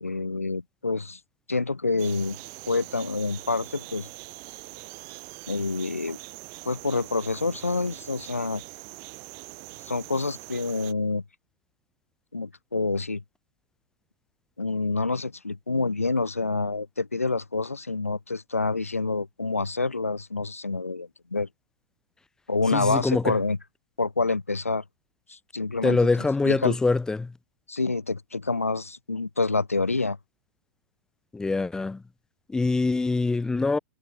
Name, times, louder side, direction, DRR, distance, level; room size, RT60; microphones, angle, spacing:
voice 1, 0.0-1.2 1.5-2.4 2.7-4.1 5.5-6.2 6.6-8.6 9.8-11.2 12.3-13.2 14.6-21.5 22.5-23.6 24.0-24.8 25.3-26.0 26.4-26.8 27.7-30.2, left 3 dB, 85° left, 1.0 m, -27 dB
sound 1, 2.0-10.9, right 34 dB, 40° right, 6.9 m, -43 dB
voice 2, 22.7-23.3 25.8-27.3 31.3-32.0 32.5-33.8, left 3 dB, 10° left, 2.4 m, -24 dB
figure-of-eight pair, 100°, 7 cm